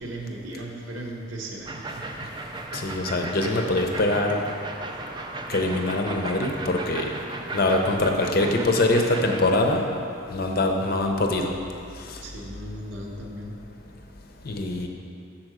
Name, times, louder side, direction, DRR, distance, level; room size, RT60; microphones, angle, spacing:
voice 1, 0.0-2.0 12.2-13.5, right 1 dB, 75° right, -1 dB, 1.0 m, -36 dB
sound 1, 1.7-9.5, right 2 dB, 20° right, 0.4 m, -36 dB
voice 2, 2.7-4.4 5.5-7.1 7.5-9.8 10.3-11.5 14.4-14.9, left 2 dB, 50° left, 3 dB, 0.6 m, -23 dB
6.5 x 4.3 x 6.0 m, 2.7 s
head